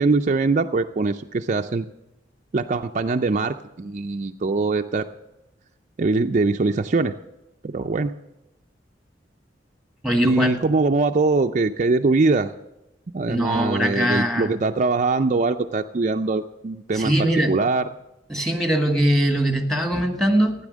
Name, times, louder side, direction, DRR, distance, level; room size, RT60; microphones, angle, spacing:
voice 1, 0.0-1.9 2.5-5.1 6.0-7.1 7.6-8.1 10.2-12.5 13.1-17.1 17.5-17.9, right 3 dB, 40° right, 5 dB, 0.5 m, -22 dB
voice 2, 10.0-10.6 13.3-14.6 16.9-17.6 18.3-20.5, equal, ahead, 4 dB, 1.6 m, -21 dB
15.5 x 10.0 x 6.2 m, 0.90 s
head